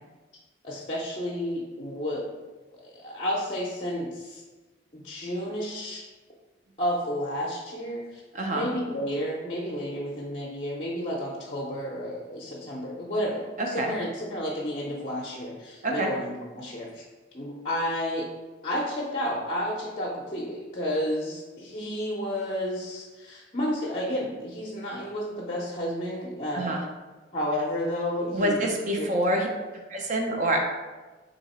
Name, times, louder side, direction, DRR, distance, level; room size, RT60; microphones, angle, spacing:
voice 1, 0.6-2.2 2.7-4.4 4.9-6.1 6.8-8.2 8.5-17.0 17.3-18.3 18.6-26.8 27.3-28.6 29.0-29.1, equal, 35° left, -4 dB, 0.6 m, -31 dB
voice 2, 8.3-8.7 13.6-13.9 15.8-16.1 26.5-26.8 28.3-29.5 29.9-30.6, right 1 dB, 40° right, 1 dB, 0.6 m, -26 dB
3.9 x 2.8 x 4.1 m, 1.2 s
head